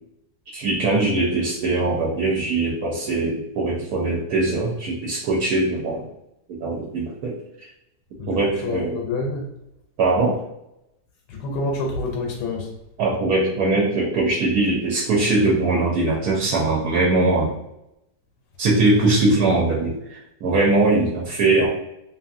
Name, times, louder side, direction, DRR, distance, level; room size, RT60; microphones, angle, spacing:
voice 1, 0.5-6.1 6.5-7.7 8.3-9.0 10.0-10.4 13.0-17.6 18.6-21.7, right 2 dB, 75° right, -3 dB, 1.0 m, -21 dB
voice 2, 8.2-9.5 11.3-12.7, left 2 dB, 80° left, 1 dB, 1.2 m, -28 dB
2.7 x 2.7 x 2.5 m, 0.83 s
omnidirectional pair, 1.8 m